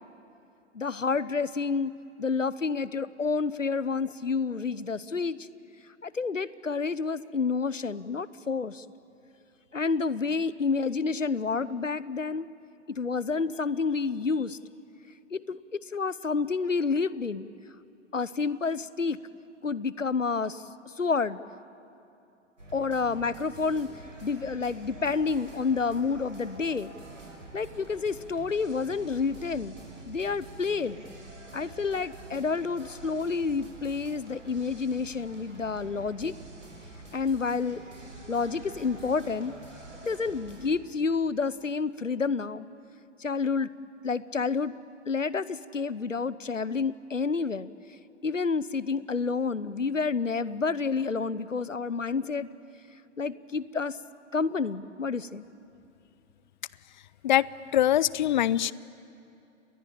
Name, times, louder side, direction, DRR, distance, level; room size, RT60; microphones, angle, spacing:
voice 1, 0.7-1.9 2.2-5.5 6.0-8.8 9.7-12.5 12.9-14.6 15.3-17.5 18.1-19.2 19.6-20.6 21.0-21.4 22.7-23.9 24.2-26.9 27.5-29.7 30.1-31.0 31.5-36.3 37.1-37.8 38.3-39.5 40.0-42.7 43.2-43.7 44.0-44.7 45.1-47.7 48.2-52.5 53.2-54.0 54.3-55.4, left 4 dB, 85° left, 18 dB, 0.9 m, -29 dB
sound 1, 22.6-40.7, right 2 dB, 85° right, 5.9 m, -47 dB
voice 2, 57.7-58.7, left 12 dB, 40° left, 22 dB, 0.5 m, -23 dB
30.0 x 21.0 x 8.8 m, 2.8 s
figure-of-eight pair, 115°, 37 cm